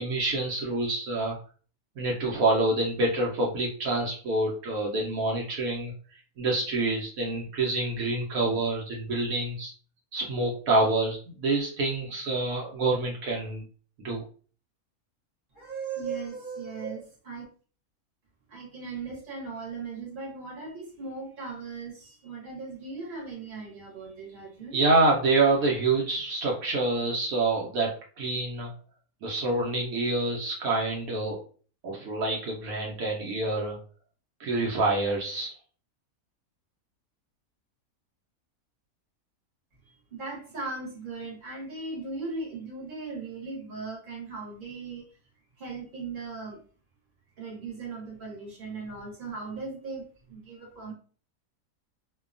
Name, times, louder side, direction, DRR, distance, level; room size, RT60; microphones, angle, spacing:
voice 1, 0.0-1.4 2.0-5.9 6.4-9.7 10.1-13.6 14.0-14.2 24.7-28.7 29.2-31.4 31.8-33.8 34.4-35.5, right 2 dB, 75° right, -2 dB, 1.1 m, -27 dB
voice 2, 15.5-17.4 18.5-24.8 40.1-45.0 45.6-46.6 47.4-50.9, right 4 dB, 40° right, -2 dB, 1.1 m, -38 dB
2.7 x 2.2 x 2.4 m, 0.40 s
omnidirectional pair, 1.5 m